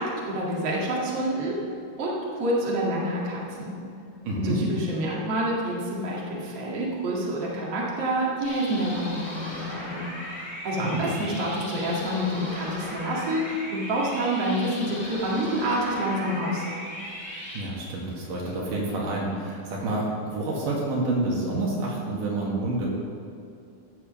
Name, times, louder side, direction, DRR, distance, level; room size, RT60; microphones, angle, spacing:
voice 1, 0.0-1.6 2.0-3.8 4.4-16.6, right 1 dB, 50° right, -5 dB, 2.8 m, -28 dB
voice 2, 4.2-4.6 10.8-11.0 17.5-22.9, right 2 dB, 75° right, -4 dB, 3.3 m, -28 dB
sound 1, 8.4-17.6, equal, 50° left, 4.5 m, -38 dB
15.5 x 6.7 x 5.3 m, 2.5 s
omnidirectional pair, 3.8 m